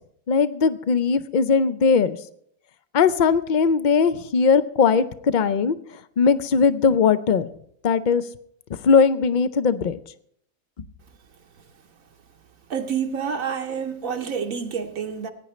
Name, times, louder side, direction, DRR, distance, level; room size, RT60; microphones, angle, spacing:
voice 1, 0.3-2.2 2.9-5.8 6.2-7.5 7.8-8.2 8.7-10.0, left 5 dB, 55° left, 0.5 m, -19 dB
voice 2, 12.7-15.3, right 7 dB, 70° right, 1.2 m, -28 dB
20.0 x 10.0 x 3.1 m
omnidirectional pair, 1.5 m